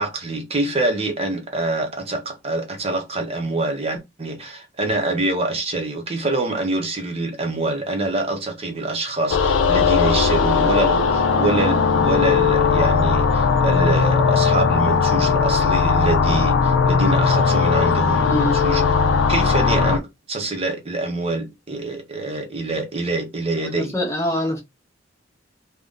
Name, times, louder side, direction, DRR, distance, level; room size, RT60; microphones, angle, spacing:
voice 1, 0.0-18.8 19.3-24.0, right 2 dB, 30° right, 0.7 m, -25 dB
sound 1, 9.3-20.0, left 5 dB, 85° left, 0.4 m, -18 dB
voice 2, 18.3-18.6 23.6-24.6, left 1 dB, 15° left, 0.6 m, -24 dB
2.5 x 2.2 x 3.6 m
head